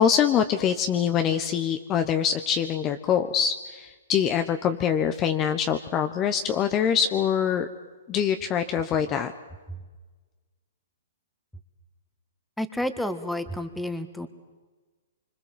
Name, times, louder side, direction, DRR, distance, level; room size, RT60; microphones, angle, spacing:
voice 1, 0.0-7.7 8.1-9.3, left 8 dB, 25° left, 8 dB, 1.1 m, -24 dB
voice 2, 12.6-14.3, left 1 dB, ahead, 9 dB, 1.8 m, -30 dB
25.5 x 25.0 x 7.5 m, 1.3 s
hypercardioid pair, 130°, 0 cm